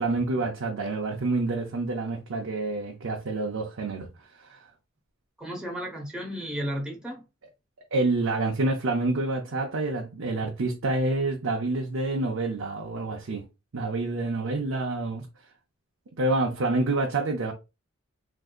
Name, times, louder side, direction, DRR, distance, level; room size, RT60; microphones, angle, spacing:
voice 1, 0.0-4.1 4.3-4.6 7.9-13.4 13.7-15.3 16.2-17.5, right 2 dB, 60° right, 0.6 m, -27 dB
voice 2, 5.4-7.2, equal, 5° right, 1.0 m, -33 dB
3.6 x 2.7 x 2.4 m
head